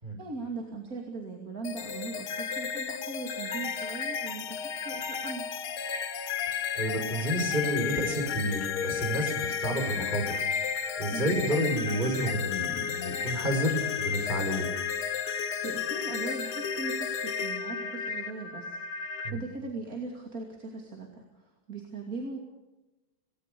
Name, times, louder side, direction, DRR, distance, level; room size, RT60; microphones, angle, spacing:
voice 1, 0.2-5.5 11.1-11.4 15.6-22.4, right 3 dB, 40° right, 1 dB, 3.0 m, -39 dB
sound 1, 1.6-19.3, left 7 dB, 85° left, 2.3 m, -33 dB
voice 2, 6.7-10.4 11.0-14.7 19.2-19.4, equal, 20° right, 2 dB, 6.0 m, -30 dB
27.5 x 18.5 x 6.9 m, 1.1 s
omnidirectional pair, 2.3 m